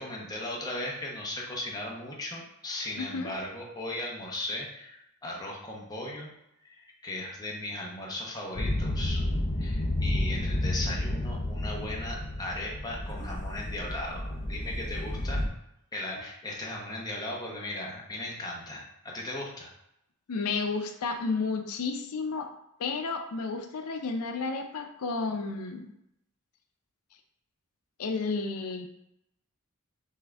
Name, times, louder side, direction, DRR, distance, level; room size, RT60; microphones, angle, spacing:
voice 1, 0.0-6.3 6.6-9.2 9.6-15.4 15.9-19.7, left 1 dB, 20° left, -2 dB, 0.9 m, -37 dB
voice 2, 3.0-3.3 20.3-22.5 22.8-25.9 28.0-28.9, left 4 dB, 90° left, 5 dB, 0.5 m, -32 dB
sound 1, 8.5-15.5, left 1 dB, 35° left, 0.6 m, -31 dB
5.6 x 2.6 x 3.4 m, 0.81 s
head